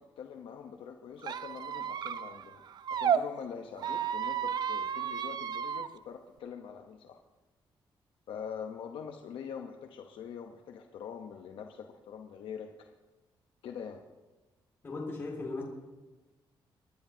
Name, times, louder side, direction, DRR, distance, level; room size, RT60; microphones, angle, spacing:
voice 1, 0.0-2.6 2.9-7.2 8.3-12.9 13.6-14.0, left 7 dB, 85° left, 4 dB, 0.9 m, -44 dB
Squeak, 1.2-3.2 3.8-5.9, right 8 dB, 55° right, 0.5 m, -32 dB
voice 2, 14.8-15.6, left 3 dB, 25° left, -2 dB, 2.3 m, -37 dB
24.5 x 11.0 x 2.8 m, 1.1 s
cardioid pair, 140°, 9 cm